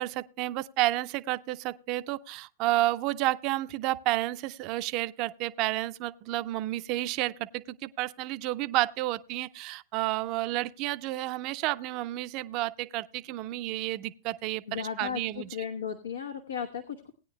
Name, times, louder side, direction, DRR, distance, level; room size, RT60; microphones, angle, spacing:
voice 1, 0.0-15.5, right 17 dB, 45° right, 0.5 m, -31 dB
voice 2, 14.7-17.1, left 7 dB, 85° left, 1.0 m, -35 dB
19.0 x 9.6 x 2.2 m
hypercardioid pair, 105°, 0 cm